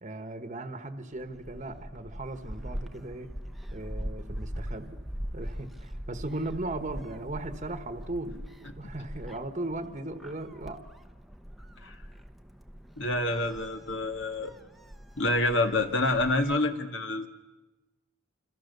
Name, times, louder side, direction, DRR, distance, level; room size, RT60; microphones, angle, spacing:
voice 1, 0.0-3.3 3.7-5.0 5.3-8.5 8.8-10.8, right 2 dB, 35° right, 8 dB, 1.4 m, -37 dB
Gull seagull, 1.1-16.6, equal, ahead, 1.0 m, -42 dB
voice 2, 13.0-14.5 15.2-17.3, left 2 dB, 55° left, 6 dB, 2.0 m, -27 dB
28.0 x 26.5 x 6.9 m, 1.1 s
head